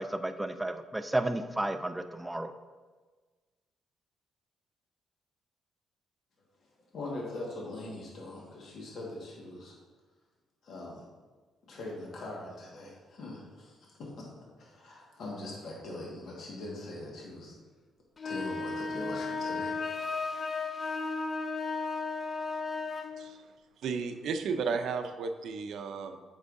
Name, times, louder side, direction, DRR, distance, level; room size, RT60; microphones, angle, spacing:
voice 1, 0.0-2.5, right 1 dB, 10° right, 8 dB, 0.4 m, -32 dB
voice 2, 6.9-9.7 10.6-11.1 11.7-14.3 14.6-17.6 18.2-20.5, left 2 dB, 65° left, -3 dB, 1.6 m, -42 dB
sound 1, 18.2-23.1, left 4 dB, 35° left, 0.7 m, -34 dB
voice 3, 23.2-23.5 23.8-26.2, right 5 dB, 75° right, 7 dB, 0.5 m, -33 dB
8.1 x 5.5 x 2.6 m, 1.4 s
cardioid pair, 90°, 0 cm